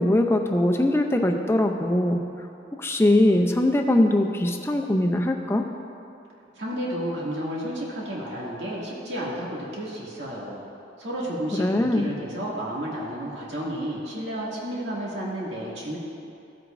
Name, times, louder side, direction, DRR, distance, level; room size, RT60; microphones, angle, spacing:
voice 1, 0.0-2.2 2.8-5.7 11.6-12.1, left 1 dB, 15° left, 4 dB, 0.5 m, -21 dB
voice 2, 6.6-10.7 11.0-16.0, equal, 80° right, -5 dB, 2.2 m, -31 dB
15.5 x 7.9 x 2.6 m, 2.6 s
head